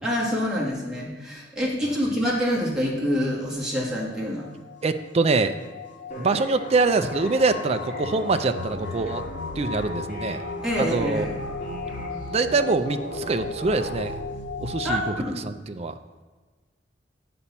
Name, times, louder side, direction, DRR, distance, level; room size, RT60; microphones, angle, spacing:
voice 1, 0.0-4.5 10.6-11.4 14.8-15.4, equal, 5° right, -5 dB, 1.8 m, -26 dB
sound 1, 3.9-15.1, left 4 dB, 70° left, 0.5 m, -36 dB
voice 2, 4.8-5.6 6.2-9.2 9.6-10.4 10.8-11.4 12.3-14.2 14.6-15.0 15.4-16.0, right 3 dB, 35° right, 9 dB, 0.4 m, -24 dB
sound 2, 6.1-14.1, right 1 dB, 50° left, 2.6 m, -39 dB
8.4 x 4.2 x 7.0 m, 1.3 s
head